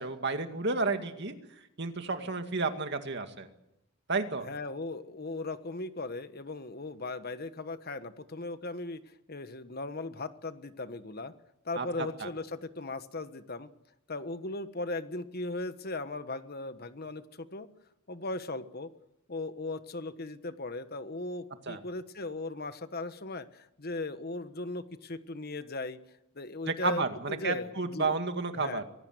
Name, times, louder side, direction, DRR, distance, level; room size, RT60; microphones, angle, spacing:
voice 1, 0.0-1.3 1.8-3.5 4.1-4.5 11.8-11.9 12.2-12.3 21.7-21.8 26.7-28.8, right 3 dB, 55° right, 6 dB, 2.2 m, -31 dB
voice 2, 4.4-9.0 9.3-11.3 11.6-13.7 14.1-17.7 18.1-18.9 19.3-26.0 26.3-27.0 27.3-28.2 28.5-28.8, left 2 dB, 50° left, 11 dB, 1.3 m, -38 dB
24.5 x 17.5 x 7.9 m, 0.85 s
head